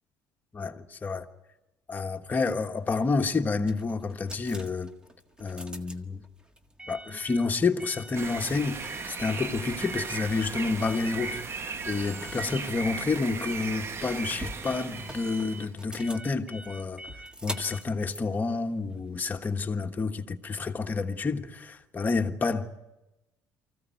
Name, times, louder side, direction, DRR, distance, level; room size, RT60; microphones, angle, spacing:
voice 1, 0.5-1.2 1.9-4.9 5.4-6.2 6.9-17.0 17.4-22.7, left 4 dB, 25° left, 1.4 m, -29 dB
sound 1, 2.9-19.3, right 1 dB, 10° right, 1.6 m, -45 dB
sound 2, 8.1-15.7, right 5 dB, 35° right, 1.2 m, -37 dB
24.5 x 15.0 x 9.2 m
cardioid pair, 125°, 7 cm